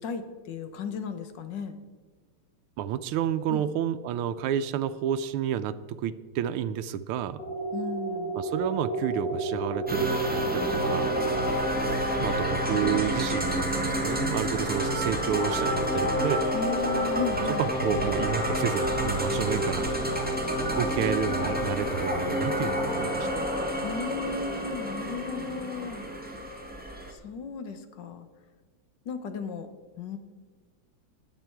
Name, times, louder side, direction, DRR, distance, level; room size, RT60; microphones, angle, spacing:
voice 1, 0.0-1.7 3.5-3.6 7.7-8.4 12.7-12.9 14.0-14.2 16.5-17.6 23.8-26.0 27.1-28.3 29.0-29.7 30.0-30.2, left 5 dB, 60° left, 9 dB, 1.5 m, -35 dB
voice 2, 2.8-7.4 8.3-11.1 12.1-16.5 17.6-19.9 20.8-23.5, right 9 dB, 90° right, 9 dB, 1.5 m, -30 dB
sound 1, 7.4-11.4, right 4 dB, 30° left, 3.9 m, -31 dB
sound 2, 9.9-27.1, equal, 5° right, 1.2 m, -28 dB
20.5 x 7.7 x 4.6 m, 1.5 s
omnidirectional pair, 2.3 m